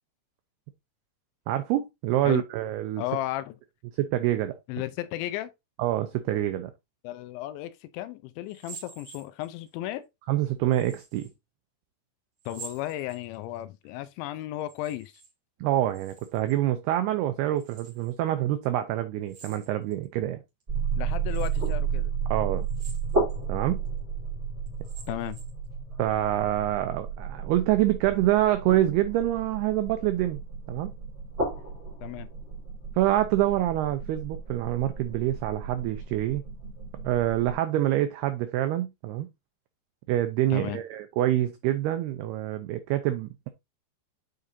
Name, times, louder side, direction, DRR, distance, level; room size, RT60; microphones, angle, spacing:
voice 1, 1.5-3.0 4.0-4.6 5.8-6.7 10.3-11.3 15.6-20.4 22.3-22.7 23.5-23.8 26.0-30.4 30.7-30.9 33.0-36.4 37.0-39.3 40.1-43.5, right 13 dB, 90° right, 2.2 m, -26 dB
voice 2, 3.0-3.6 4.7-5.5 7.0-10.1 12.5-15.1 21.0-22.1 25.1-25.4 32.0-32.3 40.5-40.8, left 14 dB, 80° left, 2.9 m, -34 dB
sound 1, 8.5-9.7 10.7-11.3 12.4-13.6 14.6-15.3 15.6-16.6 17.6-18.1 19.3-20.0 20.6-20.7 21.3-21.7 22.6-23.4 23.9-24.0 24.7-25.6, right 5 dB, 35° right, 2.7 m, -48 dB
sound 2, 20.7-37.5, right 5 dB, 20° right, 2.5 m, -33 dB
9.2 x 4.9 x 2.7 m
omnidirectional pair, 5.4 m